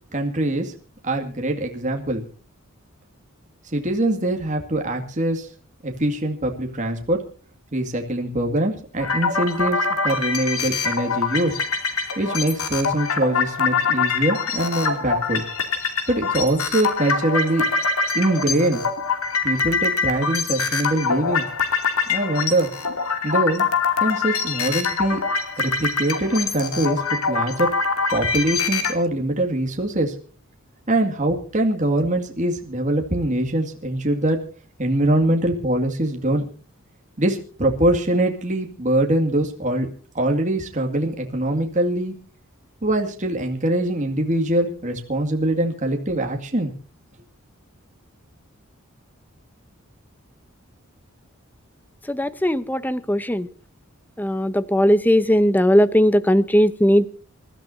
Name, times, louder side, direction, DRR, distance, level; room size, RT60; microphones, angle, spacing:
voice 1, 0.1-0.7 1.0-2.2 3.7-5.5 5.8-7.2 7.7-9.8 10.0-11.6 12.2-15.4 16.1-17.6 18.1-18.8 19.4-21.5 22.1-22.7 23.2-23.7 24.0-25.2 25.6-27.7 28.1-30.1 30.9-34.4 34.8-36.5 37.2-39.9 40.1-42.1 42.8-46.7, right 1 dB, 35° right, 3 dB, 2.2 m, -23 dB
sound 1, 9.0-28.9, left 5 dB, 80° left, 2.8 m, -24 dB
voice 2, 52.1-53.5 54.2-57.1, equal, 10° left, 15 dB, 0.7 m, -18 dB
27.5 x 13.5 x 2.7 m, 0.38 s
head